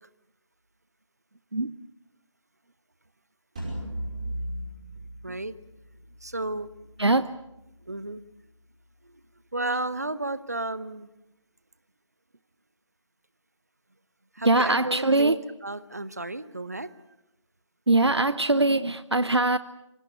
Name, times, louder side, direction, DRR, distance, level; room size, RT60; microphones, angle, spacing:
sound 1, 3.6-8.6, right 1 dB, 15° right, 5.5 m, -38 dB
voice 1, 5.2-5.5 6.2-6.7 7.8-8.2 9.0-9.2 9.5-11.1 14.3-16.9, right 2 dB, 30° right, 16 dB, 0.9 m, -32 dB
voice 2, 14.4-15.3 17.9-19.6, right 2 dB, 60° right, 14 dB, 0.9 m, -22 dB
28.0 x 24.5 x 6.6 m, 0.89 s
figure-of-eight pair, 170°, 16 cm